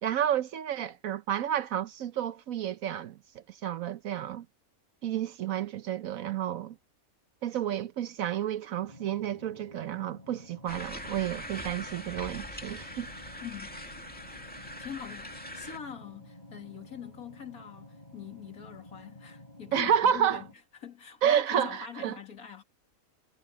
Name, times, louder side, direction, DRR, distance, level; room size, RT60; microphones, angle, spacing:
voice 1, 0.0-4.4 5.0-6.7 7.4-13.1 19.7-20.4 21.2-22.2, right 10 dB, 70° right, 1.1 m, -30 dB
sound 1, 8.8-20.5, left 1 dB, 30° left, 5.5 m, -51 dB
sound 2, 10.7-15.8, left 1 dB, 5° left, 2.3 m, -42 dB
voice 2, 13.4-13.8 14.6-20.5 20.8-22.6, left 8 dB, 75° left, 2.6 m, -43 dB
omnidirectional pair, 1.5 m